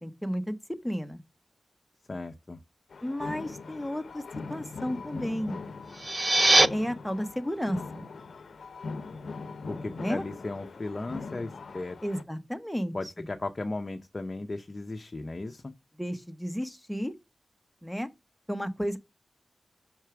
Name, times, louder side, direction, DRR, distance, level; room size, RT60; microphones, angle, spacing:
voice 1, 0.0-1.2 3.0-4.2 4.5-5.6 6.7-8.1 10.0-10.2 12.0-12.9 16.0-17.1 17.8-18.1 18.5-19.0, equal, 5° left, 1.0 m, -32 dB
voice 2, 2.1-2.6 9.7-12.0 12.9-15.6, left 2 dB, 40° left, 0.6 m, -36 dB
sound 1, 2.9-12.2, left 4 dB, 85° left, 0.6 m, -41 dB
sound 2, 5.8-6.7, right 2 dB, 35° right, 0.5 m, -21 dB
5.9 x 4.5 x 4.6 m
wide cardioid pair, 65°, 0 cm